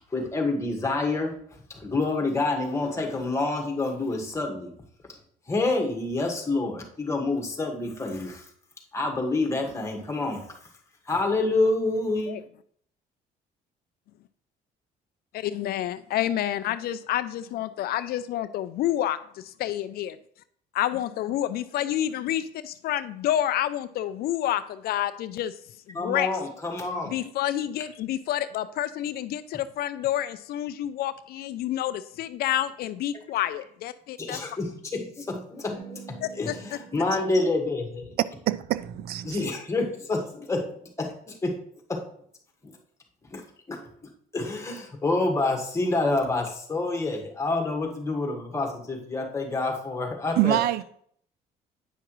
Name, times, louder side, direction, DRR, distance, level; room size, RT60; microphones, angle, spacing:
voice 1, 0.1-4.7 5.5-8.5 8.9-10.6 11.0-12.3 25.9-27.1 34.2-38.1 39.2-41.6 41.9-42.0 42.6-42.8 43.3-50.6, left 2 dB, 15° left, 1.6 m, -28 dB
voice 2, 15.3-20.2 20.7-25.5 25.9-26.3 27.1-34.4 36.2-36.6, left 12 dB, 65° left, 0.4 m, -29 dB
sound 1, 35.7-40.1, right 6 dB, 35° right, 2.3 m, -49 dB
voice 3, 38.5-39.4 50.4-50.8, right 14 dB, 70° right, 0.4 m, -25 dB
9.0 x 5.8 x 3.1 m
cardioid pair, 110°, 17 cm